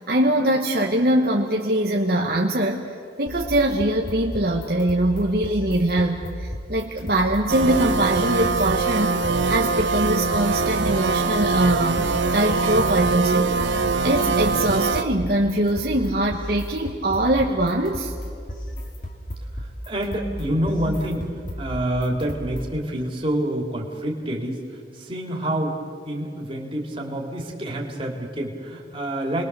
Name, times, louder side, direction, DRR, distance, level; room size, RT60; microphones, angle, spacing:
voice 1, 0.0-2.9 3.2-9.1 9.5-13.7 14.0-18.1, right 1 dB, 55° right, 0 dB, 1.3 m, -22 dB
sound 1, 3.3-22.8, equal, 45° left, 2.9 m, -34 dB
sound 2, 7.5-15.0, right 4 dB, 85° right, 0.9 m, -23 dB
voice 2, 19.5-25.8 26.0-29.5, right 1 dB, 30° right, 0 dB, 2.9 m, -28 dB
29.5 x 21.0 x 6.9 m, 2.3 s
head